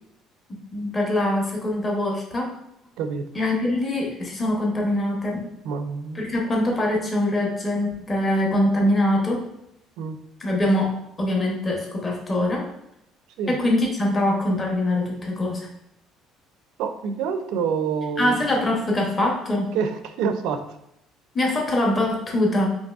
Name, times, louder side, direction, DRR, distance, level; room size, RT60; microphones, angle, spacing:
voice 1, 0.5-2.5 3.3-5.5 6.1-9.4 10.4-12.7 13.5-15.7 18.2-19.7 21.3-22.7, left 1 dB, 15° left, -1 dB, 0.8 m, -23 dB
voice 2, 5.6-6.2 10.0-10.2 13.4-13.6 16.8-18.4 19.7-20.6, right 6 dB, 65° right, 8 dB, 0.4 m, -27 dB
5.2 x 2.9 x 2.3 m, 0.80 s
cardioid pair, 180°, 0 cm